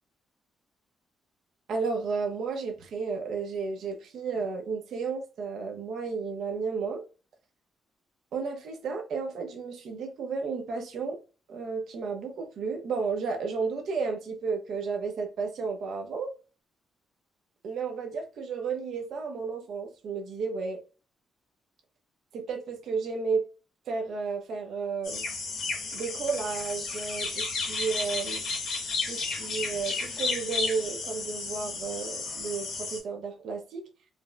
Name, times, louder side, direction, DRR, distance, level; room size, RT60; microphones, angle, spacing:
voice 1, 1.7-7.0 8.3-11.2 11.5-16.3 17.6-20.8 22.3-23.4 23.9-25.2 25.9-28.4 29.0-33.9, right 5 dB, 65° right, 0.7 m, -32 dB
sound 1, 25.0-33.0, left 4 dB, 75° left, 1.1 m, -33 dB
4.1 x 2.1 x 2.3 m
cardioid pair, 175°, 0 cm